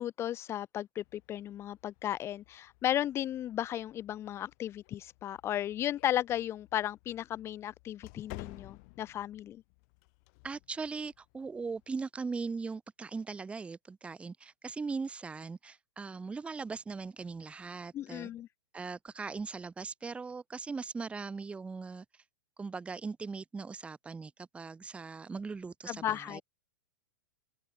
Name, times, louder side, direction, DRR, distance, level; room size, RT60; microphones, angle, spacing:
voice 1, 0.0-9.6 17.9-18.5 25.9-26.4, left 12 dB, 25° left, 0.3 m, -35 dB
sound 1, 1.0-11.9, left 33 dB, 50° left, 1.7 m, -55 dB
voice 2, 10.4-18.3 18.7-22.1 22.6-26.4, right 4 dB, 10° right, 0.7 m, -39 dB
open air
hypercardioid pair, 120°, 11 cm